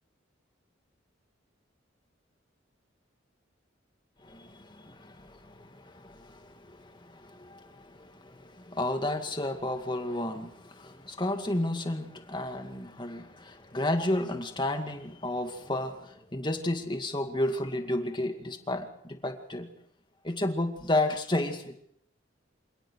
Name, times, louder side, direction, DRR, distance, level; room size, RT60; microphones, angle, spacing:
voice 1, 4.2-19.7 20.2-21.8, left 1 dB, 25° left, 2.2 m, -32 dB
27.5 x 17.5 x 6.4 m
head